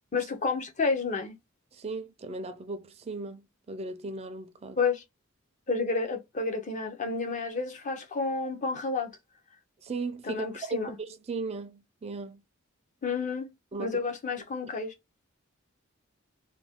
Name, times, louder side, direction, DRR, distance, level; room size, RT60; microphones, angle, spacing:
voice 1, 0.1-1.3 4.8-5.0 5.7-9.1 10.3-11.0 13.0-13.5 13.8-14.9, left 4 dB, 35° left, 0.5 m, -30 dB
voice 2, 1.7-4.8 9.8-12.4 13.7-14.0, right 3 dB, 30° right, 0.4 m, -37 dB
2.5 x 2.2 x 3.4 m
head